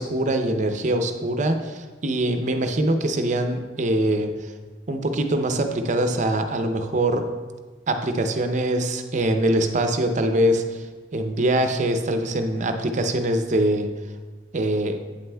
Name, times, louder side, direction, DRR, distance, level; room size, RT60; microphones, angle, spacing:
voice 1, 0.0-4.5 4.9-7.3 7.9-10.9 11.1-13.9 14.5-15.0, right 1 dB, 45° right, 7 dB, 0.6 m, -23 dB
8.7 x 7.7 x 2.2 m, 1.3 s
head